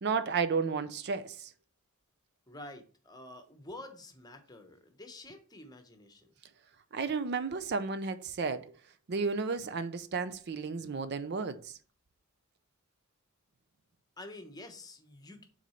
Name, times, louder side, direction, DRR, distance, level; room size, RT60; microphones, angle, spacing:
voice 1, 0.0-1.5 6.9-8.7 9.1-11.8, right 5 dB, 50° right, 0.5 m, -33 dB
voice 2, 2.5-6.4 14.2-15.5, left 1 dB, 20° left, 1.0 m, -48 dB
6.1 x 3.9 x 5.5 m
head